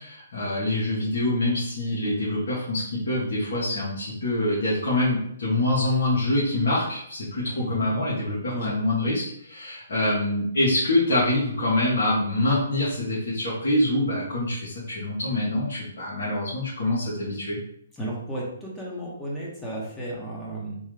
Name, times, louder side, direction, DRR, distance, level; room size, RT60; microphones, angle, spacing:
voice 1, 0.0-17.6, left 1 dB, 65° left, -9 dB, 1.3 m, -25 dB
voice 2, 7.6-7.9 8.5-8.7 18.0-20.8, right 1 dB, 10° left, -5 dB, 0.8 m, -33 dB
3.4 x 2.3 x 3.2 m, 0.71 s
hypercardioid pair, 145°, 0 cm